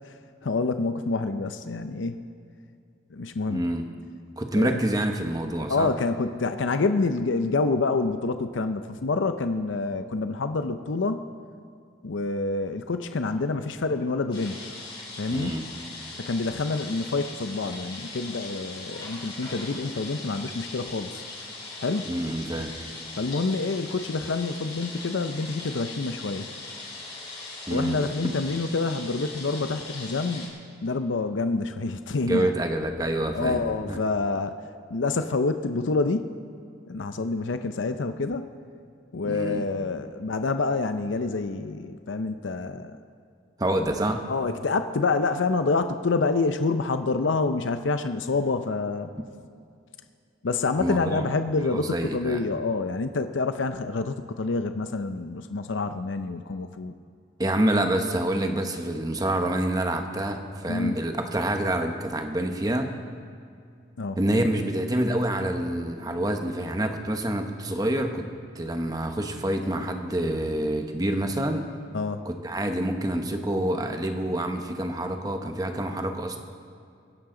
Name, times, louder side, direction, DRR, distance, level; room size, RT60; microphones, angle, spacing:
voice 1, 0.4-2.2 3.1-3.7 4.6-4.8 5.7-11.2 12.0-14.6 15.2-15.5 16.2-21.2 21.8-22.1 23.2-26.5 27.7-30.5 30.8-32.5 33.3-34.5 34.9-36.3 36.9-38.5 39.1-43.0 44.3-49.1 50.4-57.0 60.7-61.0 64.0-64.2 71.9-72.2, left 3 dB, 80° left, 9 dB, 0.6 m, -27 dB
voice 2, 3.5-3.8 4.4-5.9 15.3-15.6 22.1-22.7 27.7-28.0 32.2-34.0 39.2-39.6 43.6-44.2 50.8-51.2 51.6-52.4 57.4-63.0 64.2-68.3 68.5-71.7 72.2-76.4, right 1 dB, 20° right, 5 dB, 1.0 m, -27 dB
sound 1, 14.3-30.5, left 3 dB, 25° left, 4.1 m, -40 dB
24.0 x 10.5 x 3.8 m, 2.4 s
head